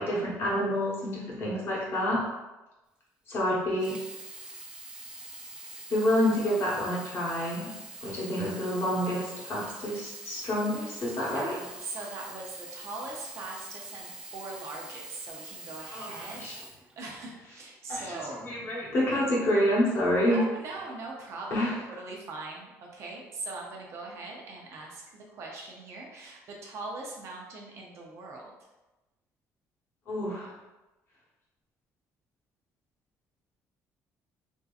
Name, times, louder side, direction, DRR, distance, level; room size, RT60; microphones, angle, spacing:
voice 1, 0.0-2.2 3.3-4.0 5.9-7.7 8.0-11.5 15.9-16.1 16.4-16.6 17.9-20.4 21.5-21.8 30.1-30.5, left 1 dB, 45° left, -5 dB, 1.2 m, -28 dB
Sink (filling or washing), 3.7-17.5 18.2-18.3, right 2 dB, 15° right, 0.4 m, -44 dB
voice 2, 11.2-16.5 17.0-18.4 20.3-28.5, right 3 dB, 55° right, -1 dB, 0.7 m, -41 dB
3.5 x 2.7 x 2.4 m, 1.1 s
cardioid pair, 135°, 6 cm